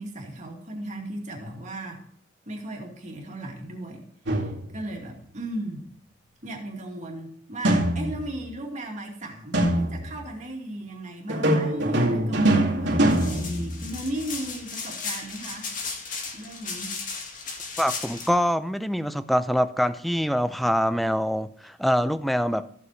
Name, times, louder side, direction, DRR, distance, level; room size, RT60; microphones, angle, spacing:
voice 1, 0.0-2.0 2.5-5.9 6.4-15.7 16.3-17.0, right 1 dB, 40° right, 2.4 m, -36 dB
sound 1, 4.3-4.9 7.6-8.5 9.5-10.3 11.3-14.2, right 1 dB, 70° right, 2.3 m, -23 dB
sound 2, 13.1-18.3, left 4 dB, 45° left, 1.8 m, -35 dB
voice 2, 17.8-22.7, equal, ahead, 0.4 m, -24 dB
14.0 x 7.8 x 3.2 m
head